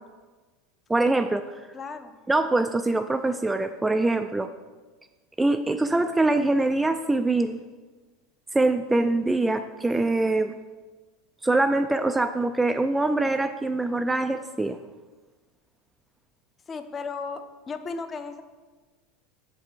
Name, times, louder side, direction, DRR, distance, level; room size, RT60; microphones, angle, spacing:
voice 1, 0.9-1.4 2.3-4.5 5.4-7.6 8.5-10.5 11.4-14.8, right 2 dB, 10° right, 8 dB, 0.3 m, -23 dB
voice 2, 1.7-2.1 16.7-18.4, left 4 dB, 30° left, 8 dB, 0.7 m, -35 dB
6.8 x 4.9 x 4.5 m, 1.3 s
hypercardioid pair, 85°, 0 cm